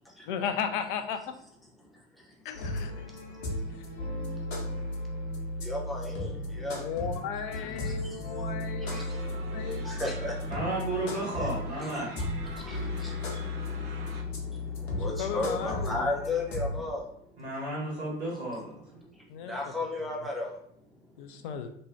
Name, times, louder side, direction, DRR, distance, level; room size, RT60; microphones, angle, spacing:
voice 1, 0.3-1.2 2.5-3.1 3.8-3.9 6.8-9.9 15.2-16.1 19.3-19.6 21.2-21.7, left 7 dB, 50° left, 7 dB, 0.4 m, -35 dB
voice 2, 1.8-2.7 3.0-7.0 7.4-17.5 18.5-18.6 19.0-21.5, left 2 dB, ahead, -2 dB, 0.6 m, -38 dB
sound 1, 2.5-16.8, left 2 dB, 70° left, 0.8 m, -35 dB
sound 2, 8.8-14.2, right 3 dB, 40° right, 0.7 m, -48 dB
voice 3, 10.5-12.2 13.3-13.5 17.4-18.8, right 1 dB, 80° right, -4 dB, 1.0 m, -33 dB
2.6 x 2.2 x 3.0 m, 0.69 s
figure-of-eight pair, 75°, 32 cm